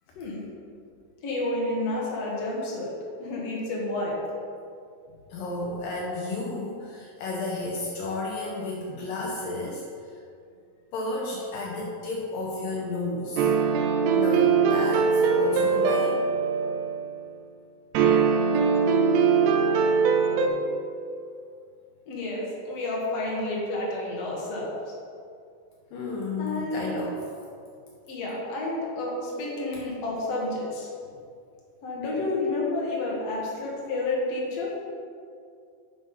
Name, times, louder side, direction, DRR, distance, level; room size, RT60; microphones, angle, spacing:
voice 1, 1.2-2.9 3.2-4.2 22.1-24.8 26.4-26.9 28.1-30.9 31.8-34.7, left 2 dB, 55° left, -4 dB, 1.9 m, -30 dB
voice 2, 5.3-9.9 10.9-13.5 14.1-16.2 25.9-27.2, left 2 dB, 85° left, -2 dB, 1.9 m, -32 dB
sound 1, 13.4-17.1 18.0-20.5, right 5 dB, 85° right, 2.6 m, -22 dB
7.3 x 7.1 x 5.4 m, 2.3 s
omnidirectional pair, 5.1 m